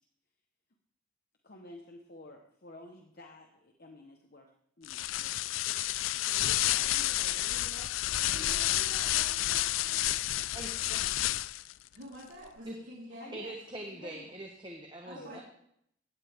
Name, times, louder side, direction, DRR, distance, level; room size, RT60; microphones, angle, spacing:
voice 1, 1.4-4.5 4.8-7.9 8.3-8.9 10.9-11.1 13.2-13.6 13.9-14.3 15.1-15.4, left 2 dB, 50° left, 2 dB, 1.1 m, -51 dB
sound 1, 4.8-11.7, left 15 dB, 85° left, 0.4 m, -30 dB
voice 2, 8.3-10.4 11.9-13.3 15.0-15.4, right 1 dB, 70° right, -9 dB, 4.0 m, -48 dB
voice 3, 13.3-15.4, right 1 dB, 25° right, 1 dB, 1.1 m, -43 dB
16.0 x 8.9 x 3.6 m, 0.72 s
head